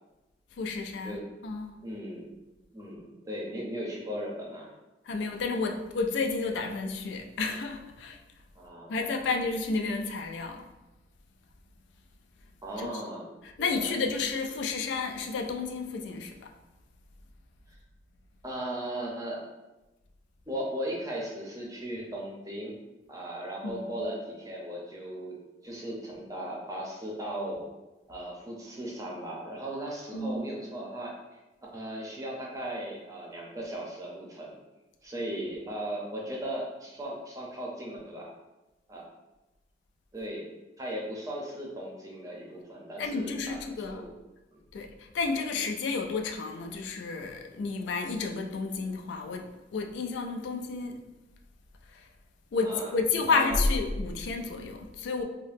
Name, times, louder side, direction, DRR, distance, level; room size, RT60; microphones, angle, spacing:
voice 1, 0.6-1.8 5.1-8.2 8.9-10.6 12.8-13.0 13.4-16.5 23.6-24.0 30.1-30.4 43.0-44.1 44.7-51.0 51.9-52.0 52.5-55.2, left 4 dB, 70° left, 4 dB, 0.3 m, -31 dB
voice 2, 1.8-2.3 2.7-4.7 8.6-9.3 12.6-13.3 13.6-14.0 18.4-19.4 20.5-22.8 23.1-25.4 25.6-27.7 28.1-31.2 31.7-34.5 35.0-38.3 38.9-39.0 40.1-40.5 40.8-44.1 44.5-44.6 45.5-45.6 52.6-52.9 53.3-53.6, right 1 dB, 20° right, -3 dB, 0.6 m, -37 dB
2.7 x 2.1 x 3.3 m, 1.0 s
head